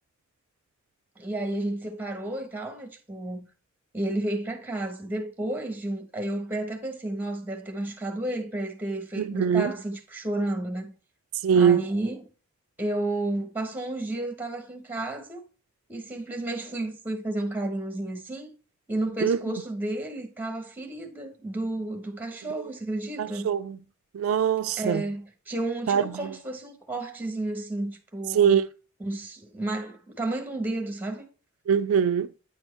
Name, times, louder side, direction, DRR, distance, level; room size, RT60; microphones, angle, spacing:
voice 1, 1.2-3.5 3.9-10.9 11.5-12.3 12.8-15.4 15.9-18.5 18.9-23.5 24.8-28.6 29.0-31.3, right 1 dB, 10° right, 1.2 m, -32 dB
voice 2, 9.2-9.7 11.4-11.8 19.2-19.4 23.2-23.8 24.1-25.0 25.9-26.0 28.3-28.6 31.7-32.3, right 7 dB, 70° right, 0.3 m, -22 dB
9.3 x 4.4 x 3.3 m
head